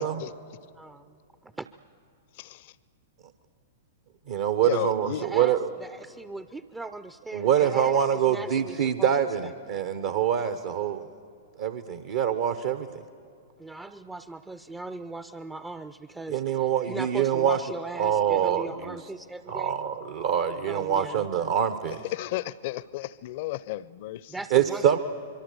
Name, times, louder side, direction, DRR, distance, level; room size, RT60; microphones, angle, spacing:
voice 1, 2.4-2.7 4.6-5.2 22.1-24.3, left 15 dB, 50° left, 0.6 m, -33 dB
voice 2, 4.3-5.7 7.3-11.0 11.6-12.9 16.3-17.6 18.0-19.0 19.5-22.0 24.5-25.0, right 9 dB, 55° right, 1.0 m, -25 dB
voice 3, 5.2-8.0 8.3-9.2 9.4-9.5 13.6-19.8 20.7-21.3 24.3-25.0, right 2 dB, 10° right, 0.5 m, -39 dB
25.5 x 23.0 x 6.8 m
figure-of-eight pair, 100°, 0 cm